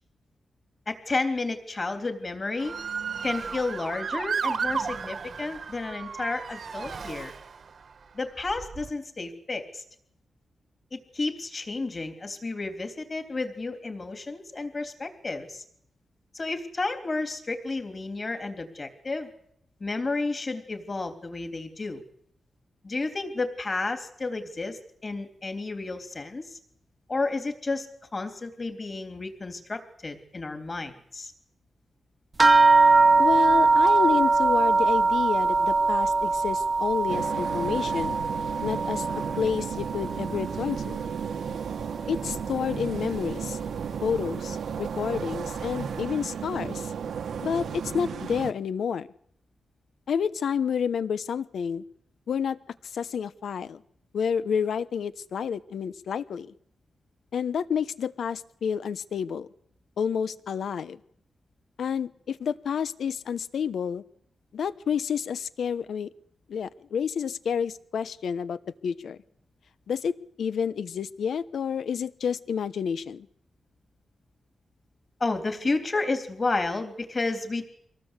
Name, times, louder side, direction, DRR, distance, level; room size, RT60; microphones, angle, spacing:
voice 1, 0.9-2.8 3.2-7.3 8.1-9.8 10.9-15.6 16.3-19.3 19.8-22.0 22.8-26.6 27.1-27.9 28.1-31.3 75.2-77.7, left 3 dB, 30° left, 6 dB, 3.3 m, -31 dB
Motor vehicle (road) / Siren, 2.6-7.8 8.5-8.9, right 5 dB, 50° right, 1.5 m, -33 dB
sound 1, 32.4-41.2 41.5-42.4 43.2-43.3 43.7-43.8, right 3 dB, 20° right, 1.1 m, -22 dB
voice 2, 33.2-38.1 38.6-39.1 39.4-41.0 42.1-43.6 44.0-46.9 47.4-49.1 50.1-51.8 52.3-52.6 52.8-53.8 54.1-56.5 57.3-59.5 60.0-61.0 61.8-64.0 64.5-66.1 66.5-69.2 69.9-73.3, left 7 dB, 75° left, 15 dB, 1.0 m, -29 dB
sound 2, 37.1-48.5, right 7 dB, 80° right, 1.5 m, -34 dB
25.0 x 18.0 x 8.3 m, 0.68 s
wide cardioid pair, 155°, 0 cm